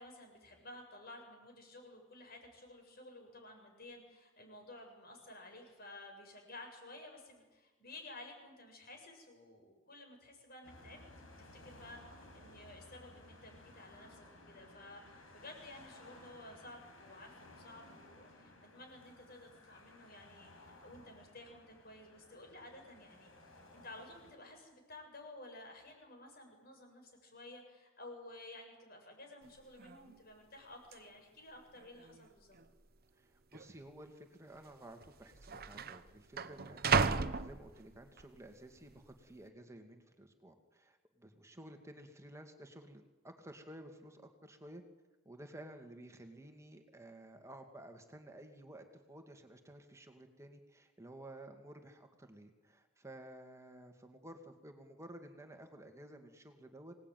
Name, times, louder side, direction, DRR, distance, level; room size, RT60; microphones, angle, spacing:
voice 1, 0.0-23.3 23.7-32.6, left 2 dB, 50° left, 3 dB, 6.9 m, -54 dB
sound 1, 10.6-24.4, left 2 dB, 85° left, 5.4 m, -58 dB
sound 2, 29.4-29.5 29.8-30.2 30.9-31.0 31.8-32.3 32.5-32.7 33.5-33.7 34.7-34.8 35.0-38.2 38.7-39.1, right 5 dB, 50° right, 1.0 m, -35 dB
voice 2, 33.2-44.8 45.2-57.0, right 1 dB, 15° right, 5 dB, 2.1 m, -53 dB
25.5 x 18.5 x 9.3 m, 1.2 s
head